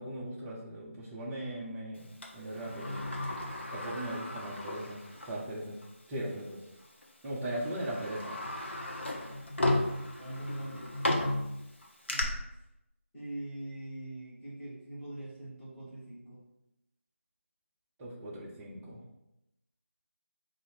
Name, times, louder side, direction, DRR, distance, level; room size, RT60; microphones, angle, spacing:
voice 1, 0.0-2.1 2.3-3.0 3.7-5.8 6.1-6.6 7.2-8.4 18.0-19.0, right 1 dB, 10° right, -6 dB, 0.4 m, -38 dB
Sliding door, 2.2-5.5 5.8-5.9 6.8-7.0 7.5-12.2, left 1 dB, 55° left, 0.7 m, -34 dB
voice 2, 9.6-11.2 12.1-12.3 13.1-16.4, right 1 dB, 10° left, -14 dB, 1.4 m, -43 dB
3.7 x 2.5 x 4.0 m, 0.87 s
figure-of-eight pair, 160°, 7 cm